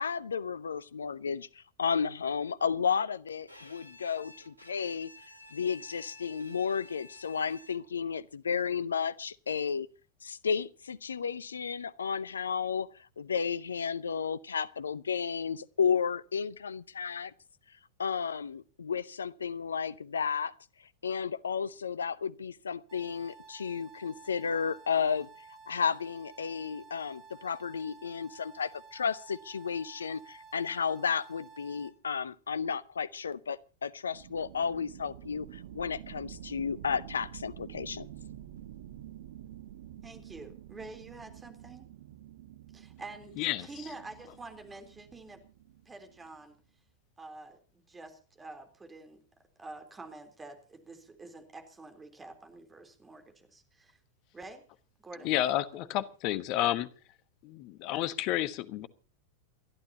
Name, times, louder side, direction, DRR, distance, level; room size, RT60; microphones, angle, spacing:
voice 1, 0.0-1.5 1.8-5.1 5.5-9.9 10.2-17.3 18.0-20.5 21.0-25.3 25.7-38.1, left 6 dB, 70° left, 0.7 m, -33 dB
Bowed string instrument, 3.5-8.1, left 2 dB, 85° right, 2.6 m, -52 dB
sound 1, 22.9-31.9, right 5 dB, 30° right, 6.8 m, -53 dB
sound 2, 34.1-46.4, right 11 dB, 55° right, 0.9 m, -48 dB
voice 2, 40.0-41.9 42.7-45.4 45.9-46.6 47.2-49.2 49.6-54.0 54.3-54.6 55.0-55.3 55.8-55.9, right 2 dB, 15° right, 3.6 m, -48 dB
voice 3, 43.4-43.7 55.2-56.9 57.4-58.9, left 13 dB, 40° left, 1.2 m, -30 dB
28.5 x 12.0 x 2.9 m
figure-of-eight pair, 90°, 0 cm